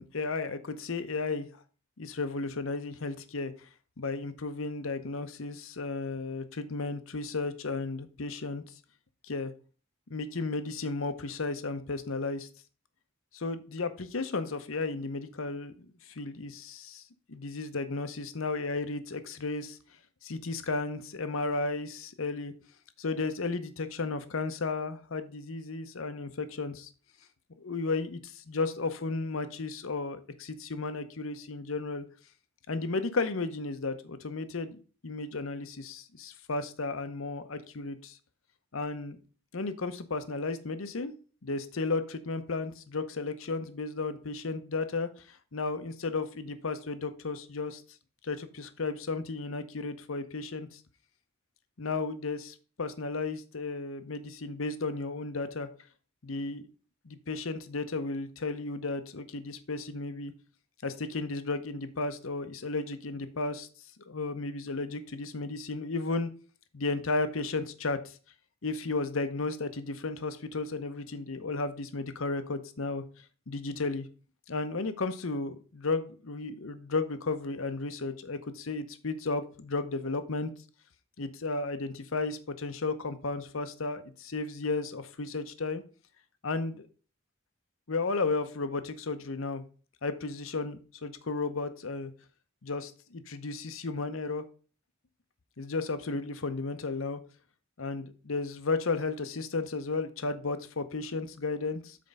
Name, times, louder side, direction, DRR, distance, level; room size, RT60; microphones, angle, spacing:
voice 1, 0.0-1.5 2.0-3.5 4.0-8.6 9.3-9.5 10.1-12.5 13.3-15.7 16.1-17.0 17.3-19.8 20.2-22.5 23.0-26.9 27.6-32.0 32.7-38.2 38.7-39.2 39.5-41.1 41.4-47.8 48.2-50.8 51.8-55.7 56.2-56.7 57.0-60.3 60.8-63.7 64.1-66.3 66.7-68.1 68.6-73.0 73.5-74.1 74.5-80.5 81.2-85.8 86.4-86.9 87.9-89.6 90.0-92.1 92.6-94.4 95.6-97.2 97.8-102.0, left 3 dB, 75° left, 10 dB, 0.8 m, -34 dB
7.6 x 4.5 x 5.3 m, 0.37 s
head